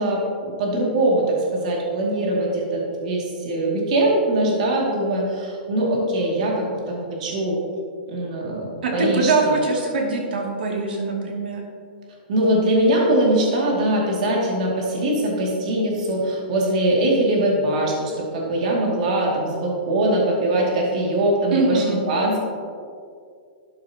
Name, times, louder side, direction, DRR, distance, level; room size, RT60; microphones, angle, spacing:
voice 1, 0.0-7.6 8.1-9.5 12.3-22.4, right 1 dB, 45° right, -2 dB, 2.3 m, -22 dB
voice 2, 8.8-11.6 21.5-22.0, right 3 dB, 70° right, -1 dB, 2.5 m, -23 dB
12.0 x 9.6 x 2.9 m, 2.3 s
hypercardioid pair, 175°, 5 cm